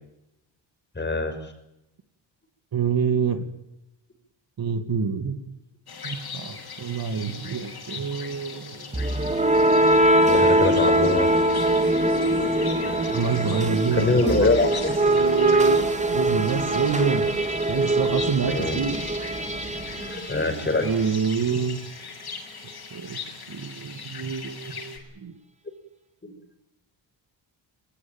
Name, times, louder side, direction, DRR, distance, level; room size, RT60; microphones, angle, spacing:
voice 1, 1.0-1.4 10.2-11.3 13.9-15.0 18.4-18.8 19.9-20.9 26.2-26.3, left 2 dB, 25° left, 7 dB, 6.1 m, -24 dB
voice 2, 2.7-3.4 4.6-5.4 6.0-9.2 10.7-10.9 13.1-14.7 15.0-17.3 17.7-19.0 20.8-21.8 22.9-23.2 23.5-25.3, right 6 dB, 50° right, 9 dB, 2.5 m, -27 dB
sound 1, 5.9-25.0, left 5 dB, 55° left, 6.2 m, -40 dB
sound 2, 8.9-20.8, right 1 dB, 15° right, 2.9 m, -22 dB
20.5 x 20.0 x 9.0 m, 0.86 s
cardioid pair, 95°, 46 cm